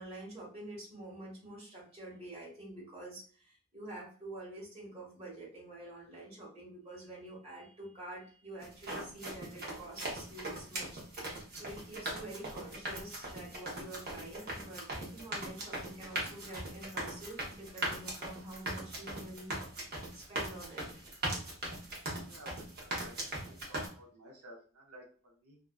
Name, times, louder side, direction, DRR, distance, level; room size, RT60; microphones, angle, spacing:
voice 1, 0.0-11.0 11.5-19.6 20.1-21.2, right 1 dB, 30° right, -5 dB, 1.2 m, -47 dB
sound 1, 8.6-23.9, right 1 dB, 45° right, 0.8 m, -40 dB
voice 2, 22.3-25.6, equal, 80° right, -2 dB, 0.7 m, -55 dB
2.5 x 2.2 x 2.3 m, 0.42 s
head